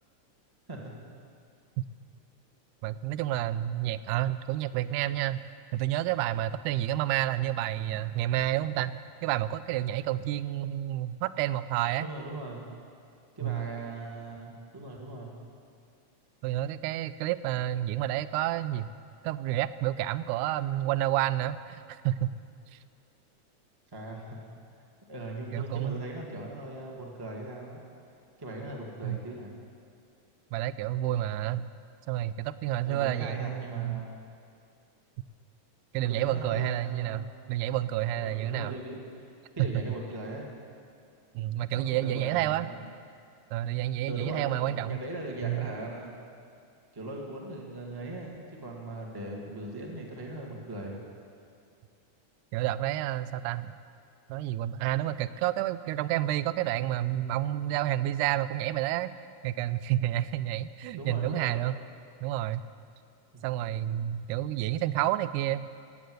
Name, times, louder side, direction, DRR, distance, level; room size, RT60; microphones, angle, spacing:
voice 1, 2.8-5.5 5.7-12.1 13.4-13.7 16.4-18.9 19.2-22.3 22.7-22.8 25.5-26.0 29.0-29.2 30.5-31.7 32.1-34.1 35.9-38.7 39.6-39.7 41.3-42.7 43.5-45.0 45.4-45.7 52.5-53.7 54.3-59.1 59.4-61.7 62.2-62.6 63.4-65.7, right 13 dB, 80° right, 15 dB, 2.0 m, -30 dB
voice 2, 12.0-12.6 13.4-15.3 23.9-24.4 25.1-27.8 28.4-29.5 32.8-34.1 35.9-37.3 38.1-39.3 39.6-40.5 41.7-42.8 44.1-46.1 46.9-51.0 60.9-61.6, right 1 dB, 10° right, -1 dB, 1.0 m, -39 dB
17.0 x 9.4 x 7.8 m, 2.4 s
omnidirectional pair, 3.7 m